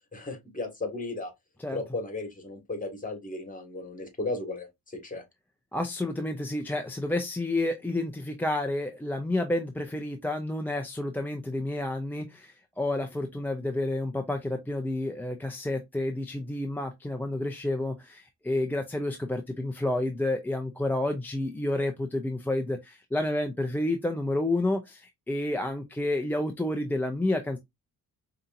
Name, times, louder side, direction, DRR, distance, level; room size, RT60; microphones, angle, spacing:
voice 1, 0.1-1.3 1.7-5.2, left 2 dB, 25° left, 1.5 m, -35 dB
voice 2, 5.7-27.6, left 1 dB, 5° left, 0.4 m, -30 dB
4.9 x 2.8 x 2.5 m
cardioid pair, 115°, 35 cm